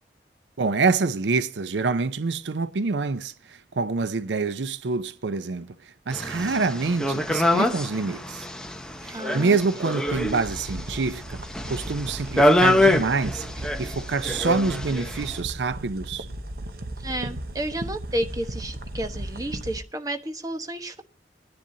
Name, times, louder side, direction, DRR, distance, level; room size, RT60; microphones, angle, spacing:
voice 1, 0.6-8.5 9.0-11.4 11.7-13.5 13.8-16.3, right 4 dB, 85° right, 0.6 m, -26 dB
sound 1, 6.1-15.4, left 1 dB, 5° left, 0.9 m, -25 dB
voice 2, 9.1-9.6 17.0-21.0, right 1 dB, 20° right, 1.1 m, -31 dB
sound 2, 10.1-19.8, right 1 dB, 55° right, 0.9 m, -36 dB
26.0 x 10.5 x 2.7 m
head